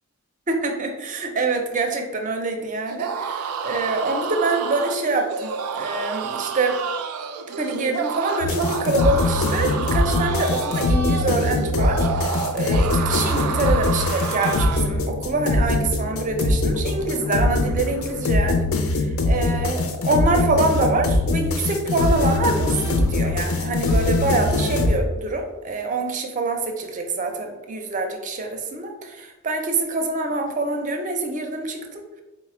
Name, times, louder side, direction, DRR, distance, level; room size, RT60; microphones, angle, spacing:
voice 1, 0.5-6.8 7.6-32.0, right 3 dB, 35° right, 4 dB, 0.5 m, -25 dB
sound 1, 2.9-15.0, right 6 dB, 90° right, 0.4 m, -29 dB
sound 2, 8.4-25.0, left 2 dB, 70° left, 0.5 m, -22 dB
4.1 x 2.1 x 4.2 m, 1.1 s
head